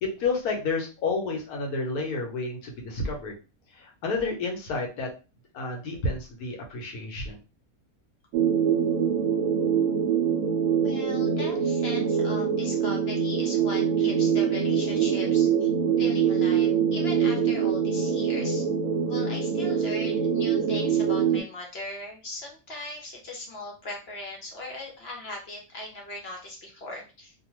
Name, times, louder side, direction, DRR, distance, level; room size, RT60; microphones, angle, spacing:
voice 1, 0.0-3.3 3.8-5.1 5.5-7.4, left 3 dB, 85° left, 1 dB, 1.3 m, -30 dB
sound 1, 8.3-21.4, right 7 dB, 75° right, 1.0 m, -24 dB
voice 2, 10.8-15.7 16.0-18.6 19.1-27.3, left 2 dB, 55° left, 0 dB, 0.8 m, -39 dB
2.8 x 2.2 x 3.0 m, 0.32 s
omnidirectional pair, 1.5 m